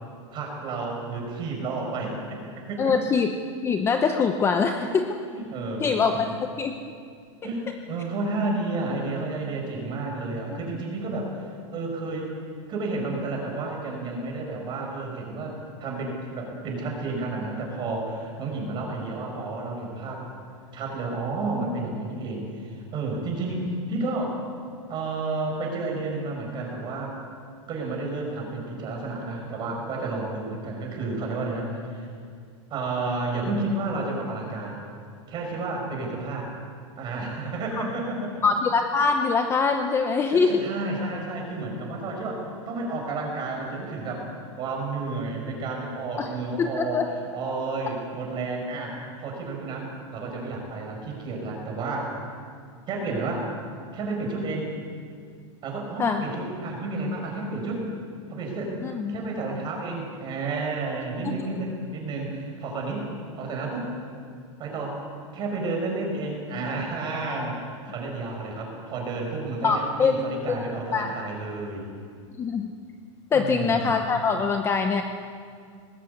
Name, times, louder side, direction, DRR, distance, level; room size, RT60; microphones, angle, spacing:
voice 1, 0.3-3.0 4.8-6.3 7.4-11.3 11.7-12.3 12.7-20.3 20.7-24.4 24.9-27.2 27.7-32.1 32.7-34.8 35.3-36.5 37.0-38.4 40.3-44.3 44.6-52.1 52.9-53.5 53.9-54.7 55.6-57.8 58.3-58.7 59.1-63.1 63.4-63.9 64.6-65.0 65.3-71.9 73.3-74.0, right 3 dB, 25° right, 0 dB, 5.9 m, -31 dB
voice 2, 2.8-3.3 3.6-5.1 5.8-6.3 6.6-6.7 10.5-10.6 38.4-40.6 46.2-46.3 46.6-47.1 56.0-56.2 58.8-59.2 61.2-61.5 69.6-70.3 70.9-71.1 72.4-72.7 73.3-75.0, left 5 dB, 15° left, 5 dB, 0.8 m, -23 dB
19.5 x 16.0 x 8.6 m, 2.2 s
supercardioid pair, 155°, 16 cm